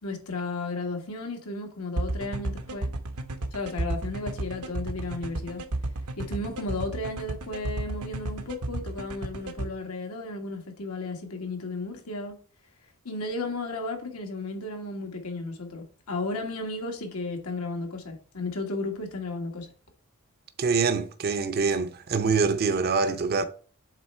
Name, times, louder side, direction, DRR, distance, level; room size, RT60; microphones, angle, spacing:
voice 1, 0.0-2.9 3.5-5.6 6.2-12.3 13.0-19.7, left 2 dB, 80° left, 1.5 m, -34 dB
sound 1, 2.0-9.7, right 2 dB, 85° right, 0.9 m, -32 dB
voice 2, 20.6-23.4, right 4 dB, 45° right, 0.6 m, -25 dB
7.5 x 3.3 x 4.3 m
head